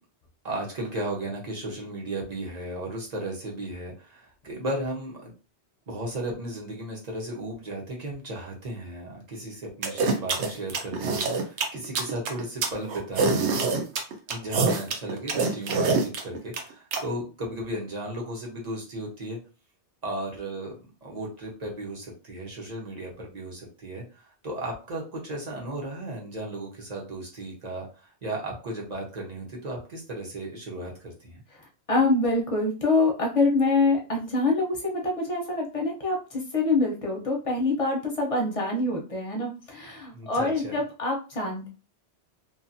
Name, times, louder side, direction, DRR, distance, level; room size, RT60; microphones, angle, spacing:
voice 1, 0.4-5.3 5.9-13.5 14.3-19.4 20.0-31.4 40.1-40.8, right 1 dB, 40° right, -2 dB, 1.0 m, -35 dB
sound 1, 9.8-17.0, right 4 dB, 80° right, 0.9 m, -25 dB
voice 2, 31.5-41.7, left 2 dB, 35° left, -1 dB, 0.7 m, -25 dB
2.6 x 2.5 x 2.6 m, 0.33 s
omnidirectional pair, 1.2 m